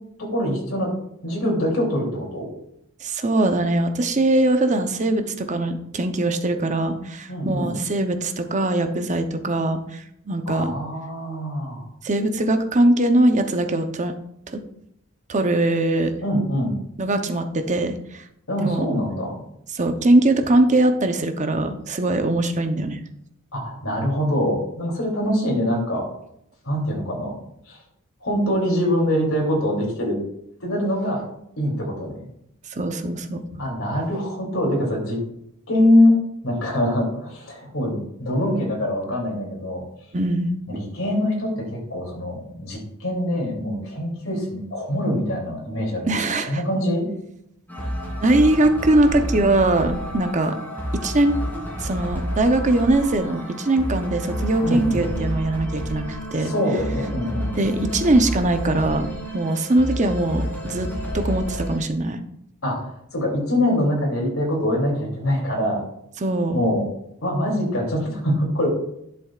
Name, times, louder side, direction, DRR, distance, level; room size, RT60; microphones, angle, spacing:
voice 1, 0.2-0.9 1.2-2.5 7.3-7.7 10.5-11.9 16.2-16.8 18.5-19.4 23.5-26.1 26.6-27.3 27.7-27.8 28.2-30.2 30.6-31.2 31.6-32.2 33.6-35.2 35.7-36.1 36.4-39.8 40.7-47.1 54.6-55.0 56.4-57.6 62.6-65.8 66.5-66.8 67.2-68.7, left 1 dB, 75° left, -1 dB, 3.0 m, -24 dB
voice 2, 3.0-10.7 12.0-14.1 14.5-14.6 15.3-16.1 17.0-18.2 18.6-18.9 19.7-23.0 32.7-33.6 40.1-40.8 46.1-46.6 48.2-50.5 50.9-56.5 57.5-59.1 59.3-62.2 66.2-66.6, right 2 dB, 35° right, 7 dB, 0.8 m, -21 dB
sound 1, 47.7-61.8, equal, 10° left, 2.7 m, -30 dB
11.0 x 6.9 x 2.4 m, 0.76 s
head